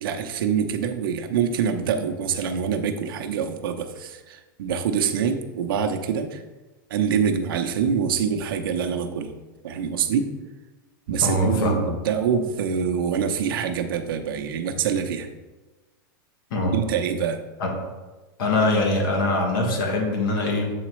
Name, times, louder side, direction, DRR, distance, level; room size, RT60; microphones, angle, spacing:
voice 1, 0.0-6.4 6.9-9.4 9.6-10.3 11.1-15.3 16.7-17.4, right 7 dB, 75° right, 6 dB, 0.7 m, -25 dB
voice 2, 11.2-11.8 16.5-16.8 17.6-17.7 18.4-20.7, left 2 dB, 75° left, 1 dB, 1.6 m, -23 dB
7.7 x 4.0 x 3.1 m, 1.2 s
supercardioid pair, 150°, 12 cm